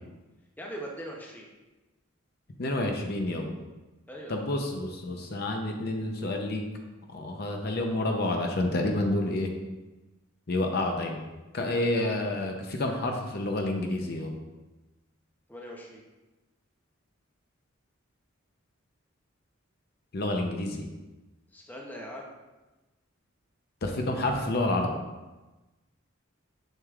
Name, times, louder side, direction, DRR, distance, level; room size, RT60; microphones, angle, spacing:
voice 1, 0.6-1.5 4.1-4.5 15.5-16.0 21.5-22.3, equal, 10° left, -1 dB, 0.7 m, -41 dB
voice 2, 2.6-3.5 4.3-6.6 7.1-9.5 10.5-11.3 11.5-14.3 20.1-20.9 23.8-25.0, left 1 dB, 50° left, 3 dB, 0.6 m, -29 dB
6.5 x 6.4 x 2.4 m, 1.1 s
head